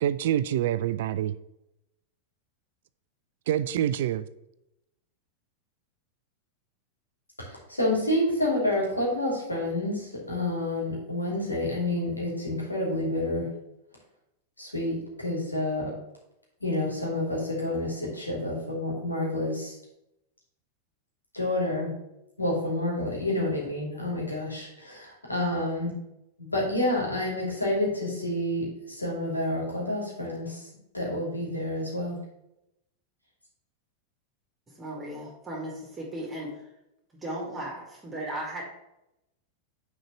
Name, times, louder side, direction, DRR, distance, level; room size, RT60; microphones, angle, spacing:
voice 1, 0.0-1.4 3.5-4.2, right 11 dB, 55° right, 0.3 m, -26 dB
voice 2, 7.4-13.5 14.6-15.9 16.6-19.7 21.3-21.9 22.4-25.9 26.4-30.6 30.9-32.2, left 1 dB, 85° left, 2.6 m, -29 dB
voice 3, 34.7-36.5 37.2-38.6, right 1 dB, 15° right, 2.1 m, -36 dB
6.4 x 4.4 x 6.3 m
figure-of-eight pair, 90°, 0 cm